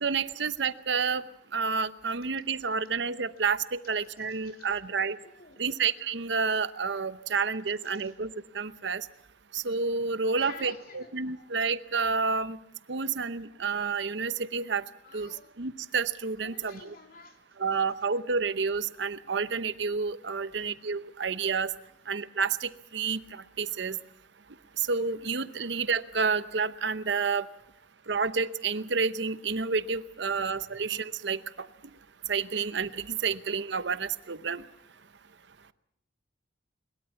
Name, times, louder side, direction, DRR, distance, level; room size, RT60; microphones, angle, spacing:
voice 1, 0.0-1.2 1.5-5.2 5.6-8.3 8.5-9.1 9.5-12.6 12.9-14.8 15.1-15.3 15.6-17.0 17.6-21.7 22.1-24.0 24.8-27.5 28.1-31.7 32.3-34.6, right 5 dB, 65° right, 14 dB, 0.8 m, -29 dB
voice 2, 4.2-4.8 5.2-5.6 7.8-8.1 10.3-11.6 15.0-15.5 16.4-17.4 20.4-20.7 21.9-22.0 30.7-30.8, left 4 dB, 50° left, 4 dB, 3.2 m, -51 dB
22.0 x 21.5 x 7.0 m, 0.73 s
head